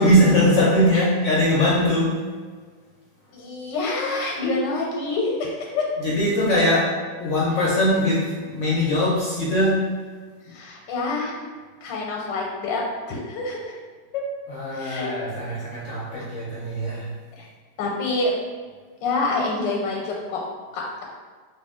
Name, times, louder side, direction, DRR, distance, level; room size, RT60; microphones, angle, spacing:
voice 1, 0.0-2.2 6.0-6.8 7.2-9.9 14.5-17.1, equal, 70° left, -6 dB, 0.7 m, -21 dB
voice 2, 3.3-5.8 6.5-6.6 10.4-11.4 11.8-12.8 13.1-13.7 14.1-14.2 14.7-15.1 17.4-17.5 17.8-18.3 19.0-20.4 20.7-21.0, left 3 dB, 90° left, -1 dB, 1.3 m, -27 dB
2.9 x 2.8 x 3.5 m, 1.5 s
omnidirectional pair, 1.9 m